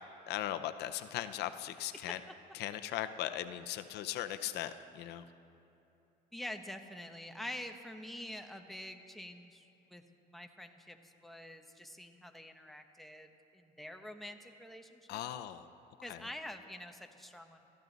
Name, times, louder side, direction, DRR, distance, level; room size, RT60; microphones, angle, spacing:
voice 1, 0.3-2.2 2.5-5.2 15.1-15.6 16.1-16.2, left 12 dB, 80° left, 10 dB, 0.6 m, -38 dB
voice 2, 6.3-10.0 10.3-15.2 16.0-17.7, left 1 dB, ahead, 5 dB, 1.0 m, -47 dB
23.0 x 13.5 x 4.0 m, 2.8 s
cardioid pair, 110°, 17 cm